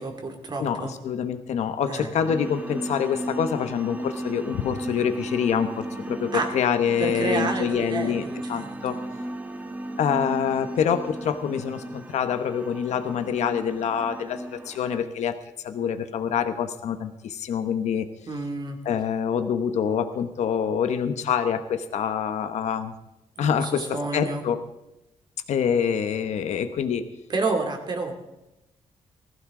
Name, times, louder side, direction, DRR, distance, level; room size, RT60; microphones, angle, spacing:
voice 1, 0.0-0.9 1.9-2.1 6.3-6.5 7.0-9.0 18.2-18.8 23.4-24.4 27.3-28.1, right 3 dB, 40° right, 3 dB, 2.7 m, -30 dB
voice 2, 0.6-8.2 8.5-9.0 10.0-15.4 15.6-18.1 18.8-22.9 23.4-24.6 25.5-27.0, left 7 dB, 75° left, 9 dB, 1.1 m, -26 dB
sound 1, 2.2-15.0, right 1 dB, 15° right, 1.1 m, -35 dB
20.0 x 15.5 x 3.8 m, 0.93 s
wide cardioid pair, 150°, 12 cm